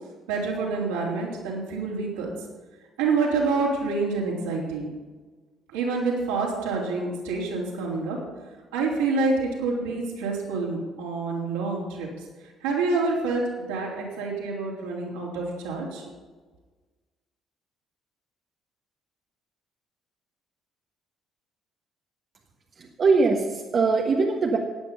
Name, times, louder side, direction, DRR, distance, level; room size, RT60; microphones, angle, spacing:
voice 1, 0.3-2.3 3.0-4.9 5.7-8.2 8.7-12.1 12.6-16.0, right 3 dB, 80° right, -4 dB, 3.6 m, -27 dB
voice 2, 23.0-24.6, right 4 dB, 45° right, 1 dB, 1.5 m, -21 dB
15.0 x 9.2 x 5.5 m, 1.3 s
hypercardioid pair, 50°, 0 cm